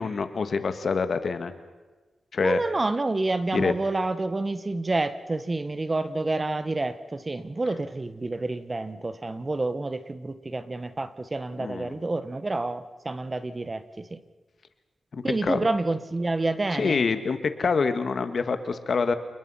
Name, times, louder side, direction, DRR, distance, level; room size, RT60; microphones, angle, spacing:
voice 1, 0.0-1.5 2.3-2.6 3.5-3.7 11.6-12.0 15.1-15.6 16.7-19.1, left 5 dB, 60° left, 10 dB, 1.9 m, -26 dB
voice 2, 2.4-14.2 15.2-17.0, right 2 dB, 30° right, 13 dB, 1.3 m, -28 dB
29.5 x 21.0 x 5.8 m, 1.3 s
cardioid pair, 75°, 0 cm